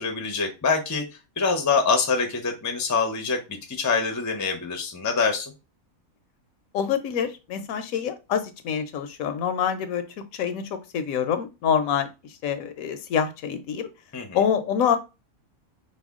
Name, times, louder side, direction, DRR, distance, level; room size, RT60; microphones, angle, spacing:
voice 1, 0.0-5.5 14.1-14.4, left 5 dB, 25° left, 4 dB, 0.4 m, -25 dB
voice 2, 6.7-10.0 10.3-13.9 14.3-15.0, left 8 dB, 80° left, 9 dB, 1.0 m, -26 dB
4.8 x 2.2 x 3.5 m, 0.27 s
omnidirectional pair, 1.5 m